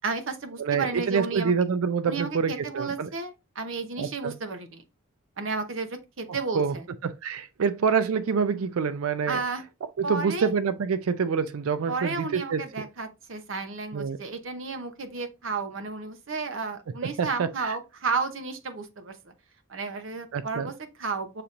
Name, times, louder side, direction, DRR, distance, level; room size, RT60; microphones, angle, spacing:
voice 1, 0.0-1.5 2.1-4.8 5.4-6.9 9.3-9.6 10.0-10.5 11.9-19.3 19.7-21.4, right 4 dB, 65° right, 0.8 m, -32 dB
voice 2, 0.6-3.1 4.0-4.3 6.3-6.7 7.0-9.4 10.0-12.6 13.9-14.2 17.0-17.8 20.3-20.7, right 6 dB, 85° right, 0.4 m, -27 dB
6.7 x 2.9 x 2.4 m
head